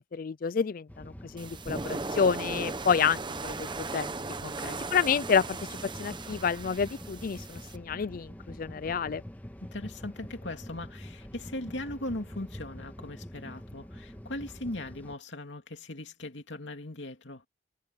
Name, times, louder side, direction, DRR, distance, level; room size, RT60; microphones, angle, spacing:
voice 1, 0.0-3.7 3.9-4.1 4.9-5.6 5.8-9.2, left 6 dB, 50° left, 0.4 m, -29 dB
sound 1, 0.9-15.2, equal, 10° left, 1.6 m, -46 dB
sound 2, 1.4-7.8, right 3 dB, 25° right, 0.9 m, -37 dB
voice 2, 4.4-4.8 9.6-17.4, left 1 dB, 75° left, 2.6 m, -39 dB
head